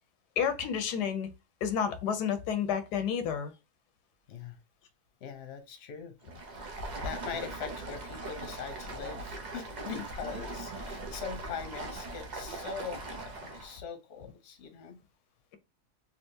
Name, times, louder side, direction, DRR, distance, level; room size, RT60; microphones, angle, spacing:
voice 1, 0.4-1.3 1.6-3.5 10.2-10.3, left 7 dB, 90° left, 1.2 m, -30 dB
voice 2, 5.2-6.2 6.5-15.0, left 6 dB, 50° left, 0.9 m, -42 dB
Stream, 6.2-13.8, right 2 dB, 70° right, 0.4 m, -40 dB
3.5 x 2.7 x 2.7 m
omnidirectional pair, 1.7 m